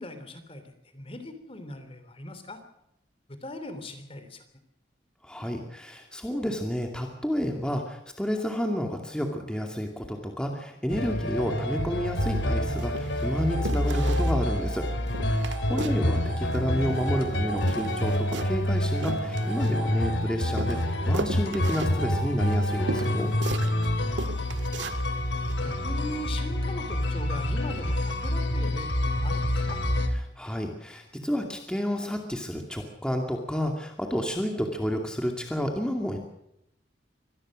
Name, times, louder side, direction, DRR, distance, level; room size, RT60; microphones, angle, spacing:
voice 1, 0.0-2.6 3.3-4.4 15.8-15.9 24.1-24.6 25.6-29.8, left 1 dB, 30° left, 9 dB, 3.2 m, -40 dB
voice 2, 5.2-14.9 15.2-23.3 30.4-36.2, equal, 5° left, 2 dB, 2.4 m, -30 dB
sound 1, 10.9-30.1, left 1 dB, 85° left, 3.2 m, -27 dB
sound 2, 12.2-12.4 12.8-13.3 13.6-14.4 14.7-14.8 15.1-16.1 16.3-17.3 17.6-20.1 20.6-23.9 24.2-25.0 25.5-25.6, right 2 dB, 85° right, 1.7 m, -36 dB
25.0 x 19.0 x 6.4 m, 0.80 s
head